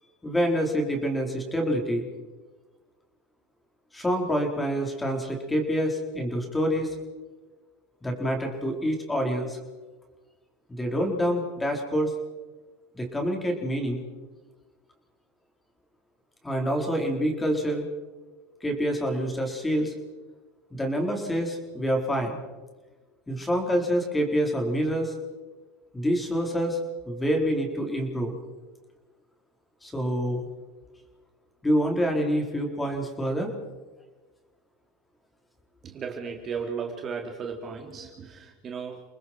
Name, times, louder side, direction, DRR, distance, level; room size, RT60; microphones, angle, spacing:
voice 1, 0.2-2.1 3.9-6.9 8.0-9.6 10.7-12.1 12.9-14.0 16.4-17.9 18.6-19.9 20.7-22.3 23.3-25.1 25.9-26.8 27.1-28.3 29.8-30.5 31.6-33.5, equal, 10° left, 2 dB, 4.3 m, -27 dB
voice 2, 35.8-39.0, right 6 dB, 35° right, 2 dB, 2.8 m, -35 dB
30.0 x 20.0 x 4.6 m, 1.3 s
supercardioid pair, 110°, 0 cm